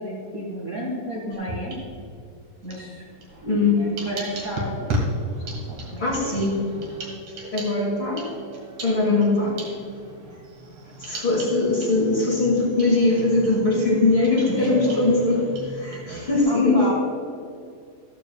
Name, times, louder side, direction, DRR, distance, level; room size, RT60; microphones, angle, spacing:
voice 1, 0.0-1.8 2.6-3.0 3.4-5.0 5.5-6.4 14.5-15.0 16.5-16.9, equal, 30° right, -5 dB, 1.9 m, -32 dB
sound 1, 1.3-2.2 2.6-16.4, right 1 dB, 60° right, 3.1 m, -35 dB
voice 2, 3.5-3.9 6.0-6.7 7.5-8.3 8.8-9.6 11.0-15.4 15.7-16.9, left 3 dB, 40° left, -4 dB, 2.5 m, -21 dB
14.5 x 14.0 x 2.3 m, 2.4 s
omnidirectional pair, 3.9 m